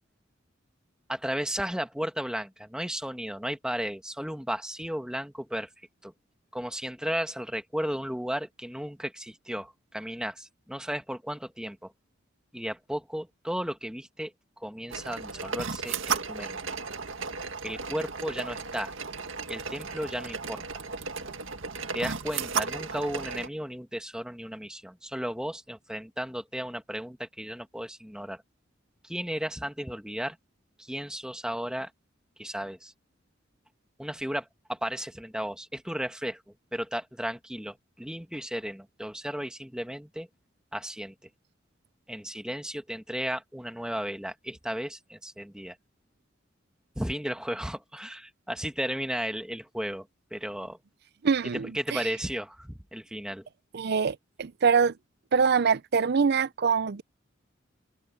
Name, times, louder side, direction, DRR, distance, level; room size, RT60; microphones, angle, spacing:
voice 1, 1.1-5.7 6.0-6.1 6.5-11.9 12.5-14.3 14.6-16.6 17.6-18.9 19.5-20.6 21.9-28.4 29.0-30.4 30.8-31.9 32.4-32.9 34.0-36.4 36.7-40.3 40.7-41.1 42.1-45.8 47.0-50.8 51.6-53.5, equal, 5° right, 1.9 m, -34 dB
sound 1, 14.9-23.5, right 5 dB, 90° right, 1.8 m, -35 dB
voice 2, 51.2-52.0 53.7-54.9 55.3-57.0, right 5 dB, 55° right, 0.5 m, -24 dB
head